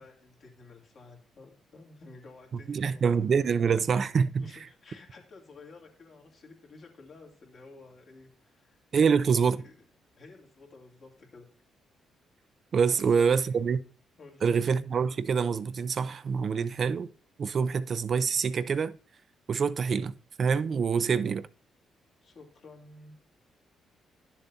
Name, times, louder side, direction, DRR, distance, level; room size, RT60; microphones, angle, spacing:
voice 1, 0.0-3.1 4.4-9.8 10.2-11.5 12.9-13.7 14.2-14.5 22.2-23.1, left 3 dB, 60° left, 2.3 m, -52 dB
voice 2, 2.7-4.4 8.9-9.6 12.7-13.8 14.4-17.1 17.4-18.9 19.5-20.1 20.4-21.5, right 6 dB, 50° right, 0.4 m, -26 dB
11.0 x 7.0 x 2.7 m
cardioid pair, 75°, 0 cm